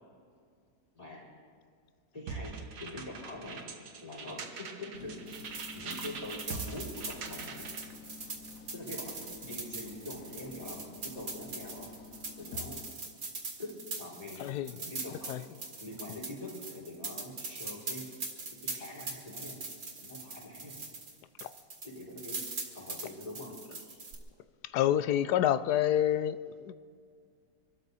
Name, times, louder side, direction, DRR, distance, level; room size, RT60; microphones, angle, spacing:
voice 1, 0.9-1.2 2.1-3.6 4.0-5.2 5.7-7.7 8.7-11.9 12.4-12.8 13.2-14.4 14.7-15.5 15.8-18.0 18.6-19.6 20.0-20.8 21.8-22.4 22.7-23.5, left 1 dB, 20° left, 4.4 m, -44 dB
sound 1, 2.3-7.9, right 5 dB, 80° right, 1.8 m, -43 dB
sound 2, 4.9-12.9, left 5 dB, 60° left, 1.2 m, -50 dB
sound 3, 5.3-21.1 21.4-24.2, right 3 dB, 60° right, 2.4 m, -42 dB
voice 2, 14.4-14.7 15.3-15.4 21.4-21.5 24.7-26.7, left 11 dB, 80° left, 1.1 m, -28 dB
25.0 x 13.0 x 4.1 m
omnidirectional pair, 1.7 m